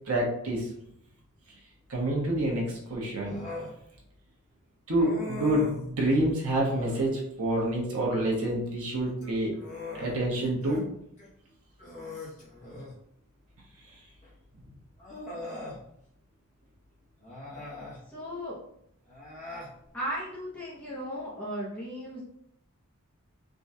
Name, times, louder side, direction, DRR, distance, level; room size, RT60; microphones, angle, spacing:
voice 1, 0.1-0.7 1.9-3.4 4.9-9.5 9.9-10.8, right 1 dB, 75° right, -2 dB, 0.9 m, -27 dB
Human voice, 3.2-3.7 5.0-5.9 6.6-7.1 9.1-10.8 11.2-11.3 11.8-13.0 14.2-14.3 15.0-15.8 17.2-18.0 19.1-19.7, left 2 dB, 35° left, 0.9 m, -41 dB
voice 2, 18.1-18.6 19.9-22.2, equal, 5° left, -7 dB, 0.6 m, -36 dB
3.6 x 2.2 x 2.7 m, 0.73 s
head